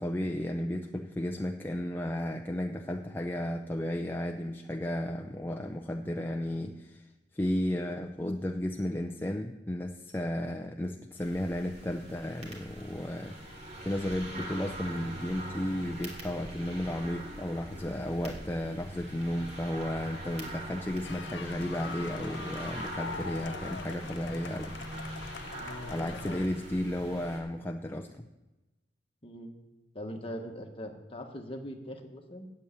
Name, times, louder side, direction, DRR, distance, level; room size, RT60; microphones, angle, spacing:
voice 1, 0.0-7.1 7.3-13.6 13.8-24.8 25.9-28.3, left 1 dB, 10° left, 4 dB, 0.5 m, -34 dB
sound 1, 11.2-27.4, right 1 dB, 40° right, 2.8 m, -42 dB
sound 2, 16.3-26.7, left 3 dB, 80° right, 3.6 m, -55 dB
sound 3, 21.0-26.5, left 6 dB, 75° left, 0.5 m, -44 dB
voice 2, 25.6-26.5 29.2-29.5 29.9-32.5, equal, 30° left, 3 dB, 1.5 m, -41 dB
9.1 x 8.2 x 8.2 m, 1.1 s
head